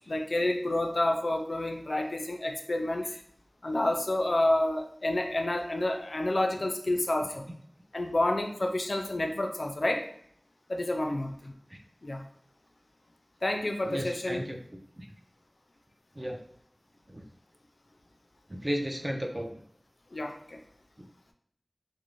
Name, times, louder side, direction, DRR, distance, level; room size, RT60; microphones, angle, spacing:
voice 1, 0.1-3.1 3.6-7.5 7.9-10.1 10.7-11.5 12.0-12.3 13.4-14.4 20.1-20.6, left 1 dB, 70° left, 4 dB, 0.3 m, -29 dB
voice 2, 13.8-14.6 15.0-15.1 16.2-16.4 17.1-17.2 18.5-19.6, equal, 25° right, 2 dB, 0.4 m, -34 dB
2.5 x 2.0 x 3.0 m, 0.64 s
wide cardioid pair, 45°, 0 cm